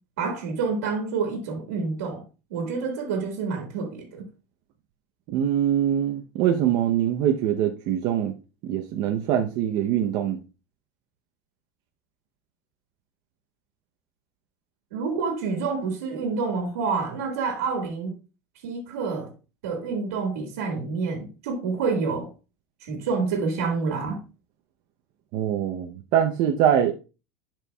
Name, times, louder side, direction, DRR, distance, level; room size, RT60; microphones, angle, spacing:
voice 1, 0.2-2.2 2.5-4.3 14.9-18.1 18.6-19.3 19.6-22.3 22.8-24.2, right 4 dB, 85° right, 1.7 m, -28 dB
voice 2, 5.3-8.3 8.6-10.4 25.3-26.9, right 10 dB, 55° right, 0.7 m, -23 dB
11.0 x 4.5 x 2.3 m
supercardioid pair, 120°, 8 cm